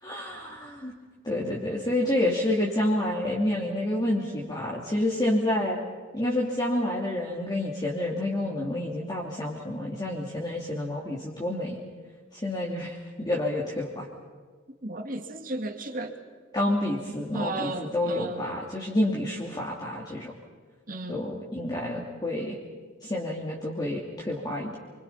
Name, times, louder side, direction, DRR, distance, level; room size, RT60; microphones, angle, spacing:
voice 1, 0.0-0.9 1.2-5.8 6.1-11.8 12.3-14.1 16.5-20.3 21.1-22.6 23.0-24.8, left 1 dB, 20° left, -4 dB, 2.8 m, -29 dB
voice 2, 14.8-16.2 17.3-18.5 20.9-21.2, right 2 dB, 45° right, 4 dB, 2.5 m, -34 dB
29.0 x 25.0 x 5.9 m, 1.5 s
head